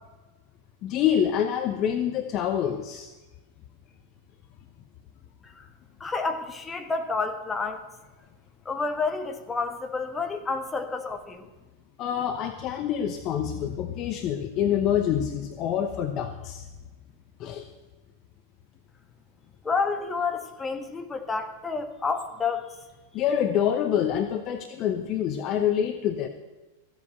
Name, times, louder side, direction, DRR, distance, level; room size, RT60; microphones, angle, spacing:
voice 1, 0.8-3.1 12.0-16.7 17.4-17.7 23.1-26.3, left 9 dB, 35° left, 8 dB, 0.9 m, -26 dB
voice 2, 6.0-7.9 8.6-11.5 19.6-22.8, left 4 dB, 15° left, 6 dB, 1.5 m, -29 dB
14.5 x 8.2 x 7.8 m, 1.2 s
figure-of-eight pair, 90°, 0 cm